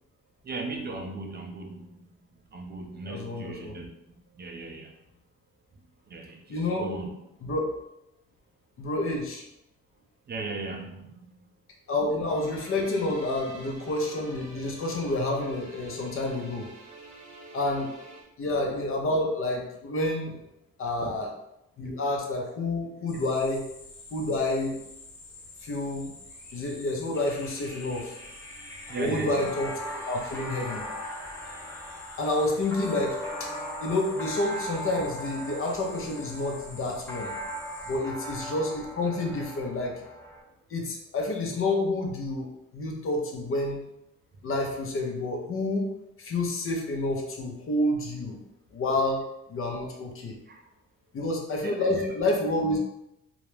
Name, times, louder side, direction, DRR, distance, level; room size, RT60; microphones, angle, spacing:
voice 1, 0.4-2.1 2.5-3.9 4.3-5.0 6.1-7.1 10.3-11.5 21.0-21.1 21.8-22.0 28.9-29.5 50.5-50.7 51.6-52.1, right 3 dB, 35° right, 2 dB, 0.4 m, -37 dB
voice 2, 3.1-3.7 6.5-6.9 7.4-7.7 8.8-9.4 11.9-16.7 17.5-17.9 18.4-20.4 20.8-21.3 21.8-23.7 24.1-24.8 25.6-26.1 26.5-28.1 29.0-30.8 32.2-33.5 33.8-37.3 37.8-40.0 40.7-43.8 44.4-45.9 46.2-48.4 48.7-50.4 51.1-52.8, left 2 dB, 45° left, 1 dB, 0.6 m, -29 dB
sound 1, 12.3-18.2, right 2 dB, 70° right, 0.9 m, -48 dB
sound 2, 23.1-38.0, left 2 dB, 80° left, 0.9 m, -48 dB
sound 3, 27.1-40.4, equal, 10° left, 0.7 m, -39 dB
2.4 x 2.0 x 3.1 m, 0.83 s
cardioid pair, 90°, 30 cm